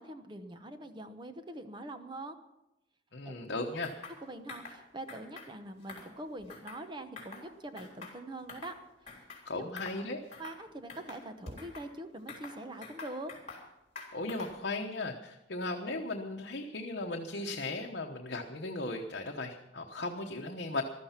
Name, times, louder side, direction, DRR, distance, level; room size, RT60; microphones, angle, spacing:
voice 1, 0.0-2.4 3.2-3.4 4.2-8.7 9.0-9.1 9.5-9.7 10.4-13.3, right 1 dB, 25° right, 8 dB, 1.0 m, -44 dB
voice 2, 3.1-3.9 9.4-10.2 14.1-20.8, left 2 dB, 60° left, 2 dB, 1.1 m, -37 dB
sound 1, 3.8-4.2 4.5-4.8 5.1-5.5 5.8-6.8 7.2-7.5 7.8-8.8 9.1-9.4 9.8-10.0 10.3-10.6 10.9-11.9 12.3-13.7 14.0-14.6, left 3 dB, 35° left, 3.7 m, -47 dB
15.0 x 13.0 x 5.8 m, 0.94 s
head